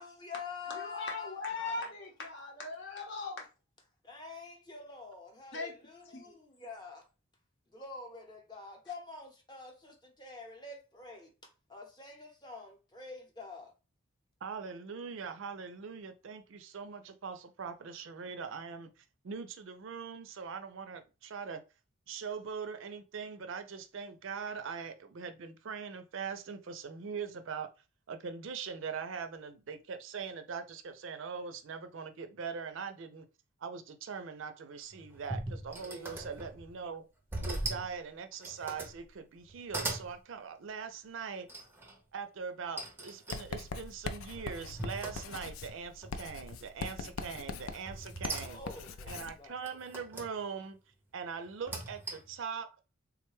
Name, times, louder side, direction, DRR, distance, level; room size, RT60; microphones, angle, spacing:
voice 1, 0.0-1.9 4.0-7.0 7.7-11.3 11.7-13.7 35.8-36.5 48.4-49.5, left 4 dB, 20° left, 0.7 m, -47 dB
voice 2, 0.8-3.4 5.5-5.7 6.1-6.3, left 3 dB, 55° left, 0.8 m, -39 dB
voice 3, 14.4-21.6 22.1-27.7 28.1-33.3 33.6-37.0 37.4-41.5 42.1-48.6 49.1-50.8 51.1-52.7, right 6 dB, 60° right, 0.4 m, -41 dB
sound 1, 34.9-36.8 37.3-37.9 38.3-39.0 39.4-40.1 41.5-42.0 42.8-45.7 46.0-46.5 47.9-48.9 49.6-50.3 51.5-52.4, right 2 dB, 10° right, 0.5 m, -40 dB
Writing, 43.3-49.4, left 4 dB, 75° left, 0.4 m, -42 dB
3.5 x 2.2 x 3.0 m
head